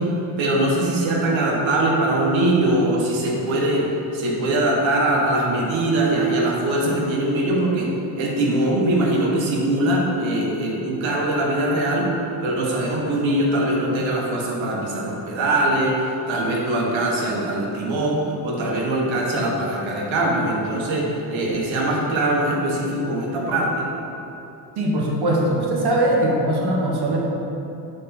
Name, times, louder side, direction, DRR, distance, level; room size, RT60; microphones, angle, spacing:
voice 1, 0.0-7.9 8.2-12.1 12.4-23.9, right 1 dB, 70° right, -2 dB, 1.4 m, -22 dB
voice 2, 24.8-27.2, right 1 dB, 55° right, -2 dB, 1.4 m, -21 dB
6.4 x 4.3 x 4.2 m, 2.9 s
cardioid pair, 80°, 48 cm